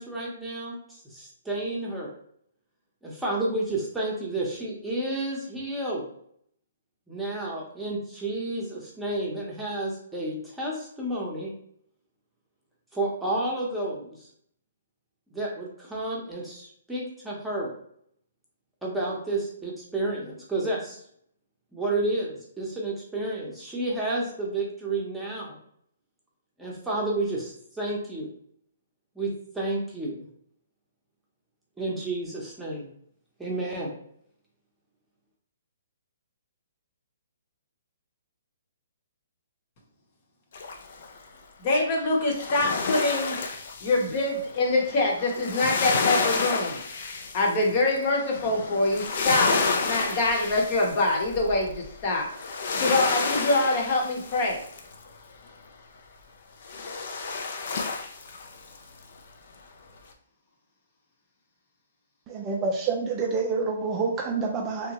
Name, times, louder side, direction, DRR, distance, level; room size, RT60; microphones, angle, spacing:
voice 1, 0.0-2.1 3.0-6.0 7.1-11.5 12.9-14.1 15.3-17.7 18.8-21.0 21.7-25.6 26.6-28.3 29.1-30.1 31.8-32.9 33.4-33.9, right 2 dB, 5° right, -4 dB, 0.8 m, -31 dB
sound 1, 40.5-41.2 42.3-55.1 56.6-58.8 59.2-59.3, left 4 dB, 60° left, 0.4 m, -30 dB
voice 2, 41.6-43.4 43.8-46.8 47.3-52.3 52.8-54.6, left 2 dB, 40° left, 0 dB, 0.9 m, -25 dB
voice 3, 62.3-64.9, right 4 dB, 25° right, 1 dB, 0.4 m, -27 dB
2.9 x 2.1 x 2.9 m, 0.67 s
hypercardioid pair, 140°, 0 cm